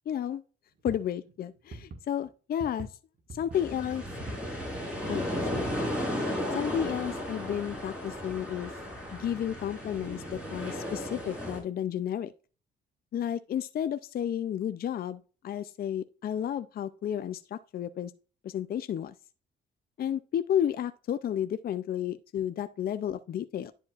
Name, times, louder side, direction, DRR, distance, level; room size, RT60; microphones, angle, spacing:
voice 1, 0.1-0.4 0.8-2.9 3.4-4.0 5.1-5.3 5.5-6.2 6.5-8.7 9.1-12.3 13.1-18.1 18.4-19.1 20.0-23.7, left 10 dB, 50° left, 0.5 m, -32 dB
sound 1, 0.8-2.3 2.6-2.9 3.2-3.8 4.2-5.1 5.6-5.7 6.6-6.7, right 3 dB, 50° right, 1.6 m, -43 dB
sound 2, 3.5-11.6, equal, 5° right, 3.6 m, -34 dB
10.5 x 5.0 x 2.4 m
cardioid pair, 90°, 20 cm